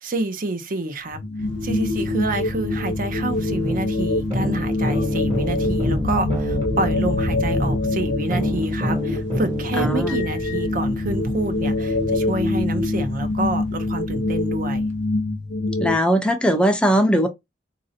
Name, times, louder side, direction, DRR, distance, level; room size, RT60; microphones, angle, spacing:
voice 1, 0.0-1.2 1.6-14.9, right 2 dB, 50° right, 0.6 m, -28 dB
sound 1, 1.1-15.9, left 2 dB, 60° left, 0.7 m, -25 dB
sound 2, 1.4-15.2, left 1 dB, 80° right, 0.9 m, -32 dB
sound 3, 3.3-3.8 4.3-7.8 8.3-10.1, equal, 30° right, 1.0 m, -28 dB
voice 2, 9.8-10.2 15.8-17.3, equal, 5° left, 0.5 m, -19 dB
4.1 x 2.5 x 2.6 m
head